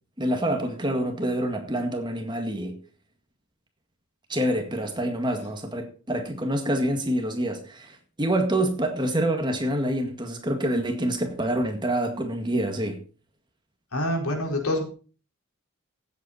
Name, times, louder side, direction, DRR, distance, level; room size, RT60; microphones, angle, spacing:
voice 1, 0.2-2.8 4.3-13.0, right 1 dB, 20° right, 1.9 m, -26 dB
voice 2, 13.9-14.8, left 1 dB, 85° left, 4.7 m, -26 dB
16.0 x 8.3 x 4.3 m
head